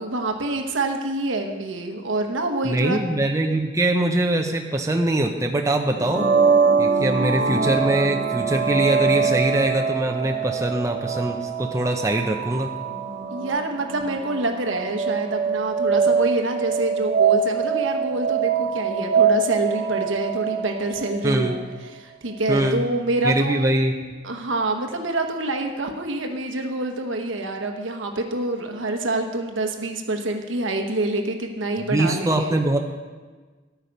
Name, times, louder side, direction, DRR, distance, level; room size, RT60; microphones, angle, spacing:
voice 1, 0.0-3.0 13.3-21.6 21.9-23.7 24.2-32.5, right 2 dB, 90° right, 4 dB, 1.1 m, -26 dB
voice 2, 2.6-6.3 6.8-12.7 21.2-21.6 22.5-22.8 23.2-24.0 31.9-32.8, right 1 dB, 15° right, 2 dB, 0.6 m, -22 dB
sound 1, 5.9-21.6, right 5 dB, 60° right, 1.3 m, -23 dB
11.5 x 9.1 x 5.3 m, 1.4 s
head